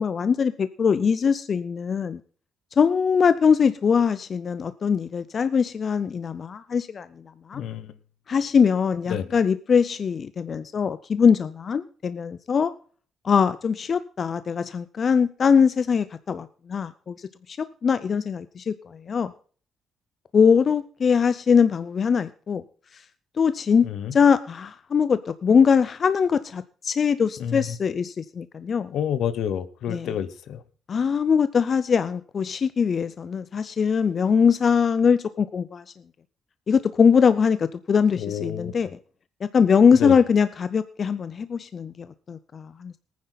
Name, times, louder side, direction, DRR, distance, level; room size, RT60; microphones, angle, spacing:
voice 1, 0.0-2.2 2.7-7.6 8.3-12.7 13.2-19.3 20.3-22.6 22.9-23.0 23.4-28.9 29.9-30.1 30.9-35.9 36.7-38.9 39.4-43.0, left 6 dB, 45° left, 14 dB, 0.5 m, -22 dB
voice 2, 7.5-7.9 9.1-9.4 23.8-24.1 27.4-27.8 28.9-30.6 38.2-38.9 40.0-40.2, left 9 dB, 75° left, 14 dB, 1.0 m, -29 dB
19.0 x 9.5 x 4.0 m, 0.43 s
cardioid pair, 90°, 0 cm